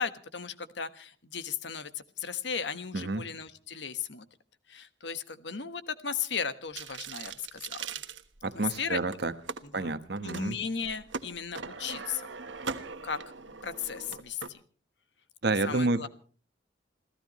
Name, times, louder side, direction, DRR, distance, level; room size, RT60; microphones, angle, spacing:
voice 1, 0.0-4.2 4.7-7.9 8.5-9.0 9.6-12.3 13.0-14.6 15.6-16.1, left 6 dB, 70° left, 1.3 m, -36 dB
voice 2, 2.9-3.3 8.4-9.3 9.7-10.6 15.4-16.1, right 2 dB, 60° right, 1.2 m, -29 dB
sound 1, 6.7-8.7 9.1-9.6 10.2-10.4 10.8-14.5, right 5 dB, 80° right, 1.3 m, -40 dB
27.5 x 16.0 x 3.1 m
head